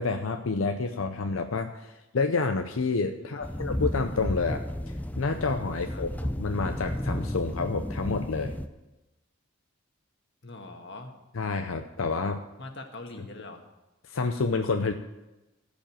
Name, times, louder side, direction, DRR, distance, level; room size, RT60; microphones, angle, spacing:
voice 1, 0.0-4.6 5.2-8.5 11.3-12.4 14.1-14.9, left 4 dB, 90° left, 6 dB, 0.7 m, -29 dB
voice 2, 3.2-3.7 5.9-6.0 10.4-11.1 12.6-13.6, left 2 dB, 60° left, 4 dB, 1.6 m, -43 dB
sound 1, 3.4-8.7, equal, 10° left, 0.5 m, -33 dB
15.5 x 5.3 x 8.8 m, 1.0 s
head